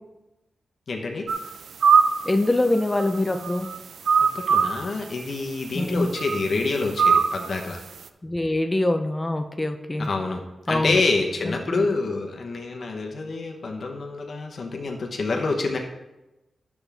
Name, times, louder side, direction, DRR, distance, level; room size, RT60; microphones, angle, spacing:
voice 1, 0.9-1.3 4.3-7.8 10.0-10.4 10.7-15.8, left 3 dB, 50° left, 1 dB, 0.9 m, -27 dB
sound 1, 1.3-1.5 1.8-2.3 2.8-3.8 4.1-4.8 6.2-6.4 7.0-7.5, right 6 dB, 80° right, 0.5 m, -20 dB
voice 2, 2.2-3.7 5.7-6.1 8.2-10.1 10.7-11.0 11.4-11.9, left 1 dB, 15° left, 7 dB, 0.4 m, -24 dB
10.5 x 7.2 x 3.4 m, 1.0 s
wide cardioid pair, 165°, 0 cm